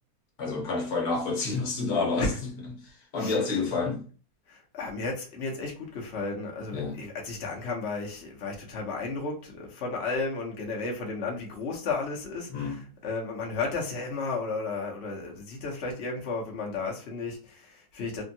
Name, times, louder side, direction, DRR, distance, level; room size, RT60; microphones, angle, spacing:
voice 1, 0.4-4.1 6.7-7.0 12.5-12.8, left 4 dB, 75° left, 1.4 m, -29 dB
voice 2, 3.2-3.6 4.5-18.2, left 3 dB, 50° left, 1.0 m, -33 dB
3.5 x 2.1 x 2.6 m
omnidirectional pair, 1.6 m